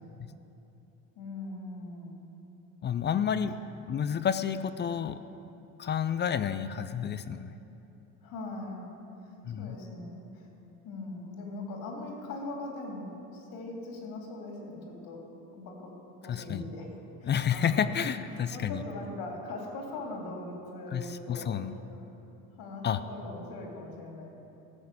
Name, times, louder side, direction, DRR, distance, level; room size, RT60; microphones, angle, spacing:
voice 1, 1.1-2.2 8.2-9.0 9.2-10.5 10.8-15.2 15.5-15.9 16.2-16.9 17.2-17.9 18.3-21.6 22.6-24.3, left 2 dB, 65° left, 0 dB, 3.3 m, -41 dB
voice 2, 2.8-3.6 3.9-5.2 5.8-7.6 9.4-9.8 16.3-16.6 17.2-18.8 20.9-21.7 22.8-23.0, left 8 dB, 30° left, 12 dB, 0.4 m, -30 dB
14.5 x 6.5 x 8.3 m, 2.9 s
supercardioid pair, 105°, 38 cm